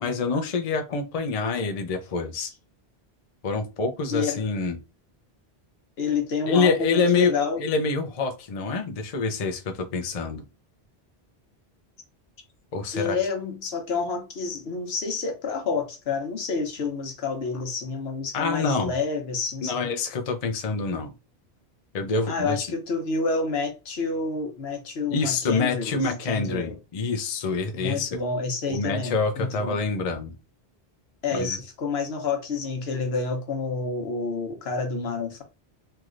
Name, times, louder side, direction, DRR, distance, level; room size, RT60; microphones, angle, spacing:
voice 1, 0.0-2.5 3.4-4.8 6.5-10.4 12.7-13.2 18.3-18.9 19.6-21.1 21.9-22.7 25.1-28.2 28.7-30.3 31.3-31.6, left 4 dB, 45° left, 0.5 m, -26 dB
voice 2, 4.1-4.4 6.0-7.6 12.9-19.9 22.3-26.8 27.7-29.8 31.2-35.4, left 4 dB, 75° left, 1.0 m, -29 dB
3.2 x 2.8 x 2.4 m
omnidirectional pair, 1.1 m